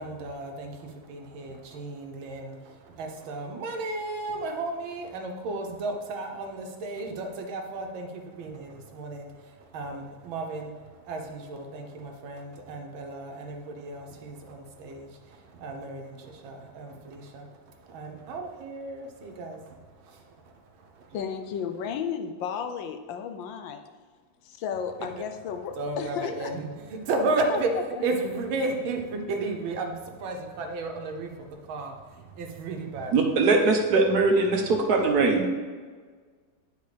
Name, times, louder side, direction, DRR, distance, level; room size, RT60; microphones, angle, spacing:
voice 1, 0.0-21.2 25.8-27.7 28.0-33.1, right 3 dB, 85° right, 3 dB, 1.7 m, -34 dB
voice 2, 21.1-23.8 24.4-26.5 27.5-27.6 28.0-28.1, left 7 dB, 80° left, 7 dB, 1.3 m, -33 dB
voice 3, 33.1-35.5, right 3 dB, 60° right, 3 dB, 1.2 m, -21 dB
9.7 x 4.6 x 3.3 m, 1.5 s
omnidirectional pair, 2.1 m